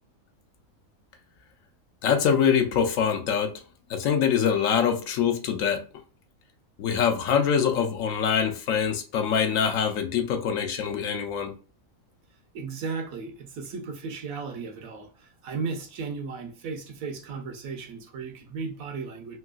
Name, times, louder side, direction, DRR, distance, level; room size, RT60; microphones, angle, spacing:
voice 1, 2.0-3.6 3.9-5.8 6.8-11.5, left 7 dB, 70° left, 0.9 m, -24 dB
voice 2, 12.5-19.4, right 4 dB, 75° right, 1.1 m, -35 dB
3.3 x 2.8 x 2.3 m
omnidirectional pair, 1.5 m